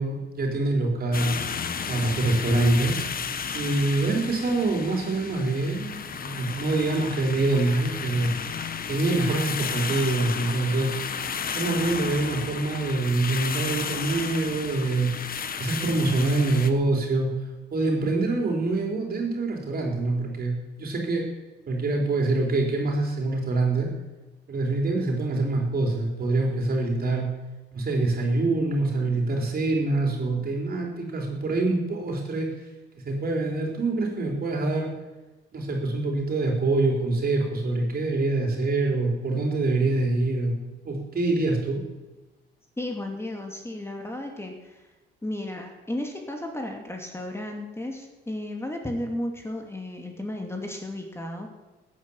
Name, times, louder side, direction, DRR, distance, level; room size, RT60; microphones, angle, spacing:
voice 1, 0.0-1.4 1.9-3.0 3.5-8.3 8.9-10.9 11.6-15.1 15.6-17.3 17.7-21.3 21.7-23.9 24.5-27.3 27.7-32.5 32.9-34.9 35.5-40.6 40.8-41.8, right 2 dB, 50° right, 1 dB, 4.1 m, -25 dB
sound 1, 1.1-16.7, left 6 dB, 45° left, 1.3 m, -33 dB
voice 2, 42.8-44.8 45.2-51.5, left 1 dB, 10° left, 2 dB, 2.5 m, -34 dB
15.5 x 9.7 x 7.2 m, 1.1 s
cardioid pair, 90°, 20 cm